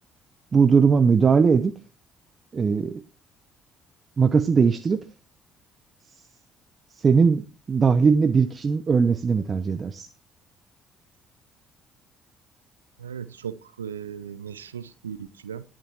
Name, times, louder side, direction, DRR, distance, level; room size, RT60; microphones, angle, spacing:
voice 1, 0.5-1.7 2.5-3.0 4.2-5.0 6.9-10.1, right 5 dB, 35° right, 0.8 m, -20 dB
voice 2, 13.0-15.6, right 8 dB, 80° right, 0.5 m, -37 dB
19.0 x 7.5 x 2.9 m
figure-of-eight pair, 50°, 0 cm